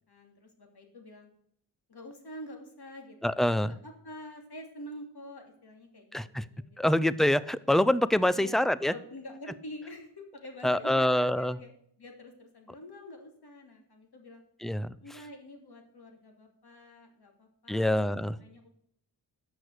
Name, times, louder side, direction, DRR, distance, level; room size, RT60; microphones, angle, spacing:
voice 1, 0.1-1.3 1.9-7.1 8.3-14.4 15.0-18.0 18.4-18.7, left 1 dB, 50° left, 3 dB, 2.9 m, -47 dB
voice 2, 3.2-3.8 6.1-6.4 6.8-8.9 10.6-11.6 14.6-14.9 17.7-18.4, left 1 dB, ahead, 17 dB, 0.4 m, -25 dB
8.5 x 6.2 x 8.0 m, 0.67 s
cardioid pair, 55°, 47 cm